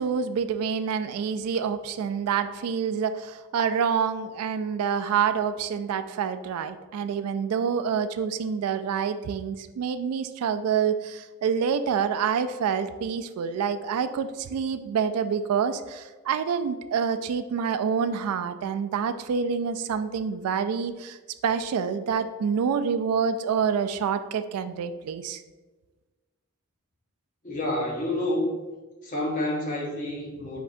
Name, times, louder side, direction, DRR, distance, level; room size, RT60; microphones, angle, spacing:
voice 1, 0.0-21.2 21.4-25.4, right 6 dB, 90° right, 11 dB, 0.3 m, -27 dB
voice 2, 27.4-28.5 29.0-30.6, left 1 dB, 35° left, -2 dB, 1.0 m, -28 dB
5.3 x 3.7 x 2.6 m, 1.3 s
head